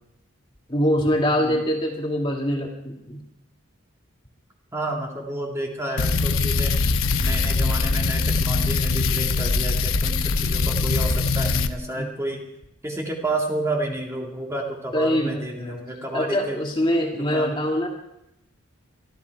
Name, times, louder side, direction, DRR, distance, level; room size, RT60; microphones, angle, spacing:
voice 1, 0.7-3.2 12.0-12.1 14.9-15.8 16.1-17.9, equal, 20° left, 1 dB, 2.1 m, -24 dB
voice 2, 4.7-6.8 7.2-12.4 12.8-16.6 17.1-17.5, right 1 dB, 15° right, 0 dB, 2.1 m, -30 dB
sound 1, 6.0-11.7, left 3 dB, 75° left, 1.0 m, -22 dB
24.0 x 13.0 x 4.7 m, 0.85 s
head